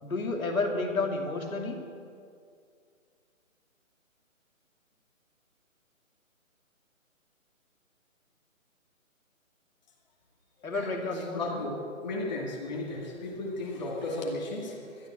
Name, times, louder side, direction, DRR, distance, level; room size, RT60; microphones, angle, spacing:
voice 1, 0.0-1.8 10.6-11.6, left 3 dB, 85° left, 2 dB, 2.8 m, -31 dB
voice 2, 10.7-15.1, left 2 dB, 30° left, -2 dB, 2.3 m, -35 dB
13.0 x 11.0 x 8.0 m, 2.3 s
hypercardioid pair, 170°, 41 cm